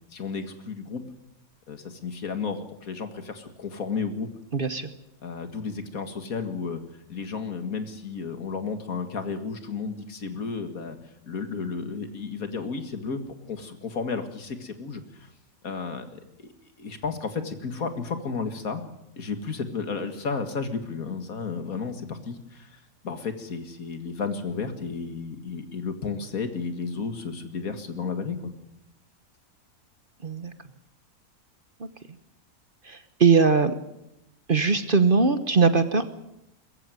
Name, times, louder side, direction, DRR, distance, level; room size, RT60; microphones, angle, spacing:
voice 1, 0.1-1.0 1.7-4.3 5.2-6.8 7.1-11.0 11.2-13.2 13.5-15.3 15.6-16.5 16.8-18.8 19.2-22.8 23.0-28.5, left 5 dB, 75° left, 8 dB, 2.3 m, -33 dB
voice 2, 4.5-4.9 30.2-30.5 32.9-33.7 34.5-36.1, right 5 dB, 40° right, 11 dB, 1.2 m, -21 dB
21.5 x 15.0 x 9.3 m, 0.87 s
omnidirectional pair, 1.5 m